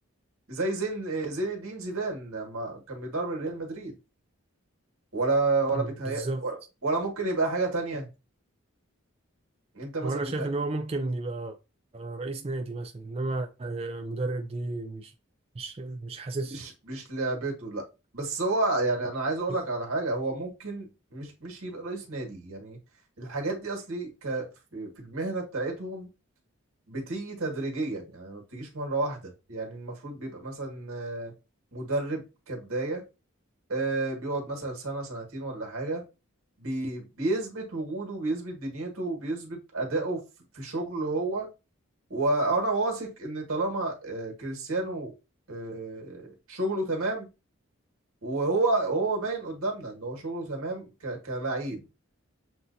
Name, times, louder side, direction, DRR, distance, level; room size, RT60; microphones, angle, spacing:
voice 1, 0.5-3.9 5.1-8.1 9.7-10.5 16.5-17.8 18.1-22.8 23.2-26.1 26.9-31.3 31.7-33.0 33.7-36.0 36.6-40.2 40.5-41.5 42.1-45.1 45.5-47.3 48.2-51.8, right 2 dB, 85° right, 1.9 m, -31 dB
voice 2, 5.7-6.4 10.0-11.6 11.9-15.1 15.6-16.6, right 2 dB, 30° right, 0.4 m, -33 dB
7.6 x 2.6 x 2.7 m
head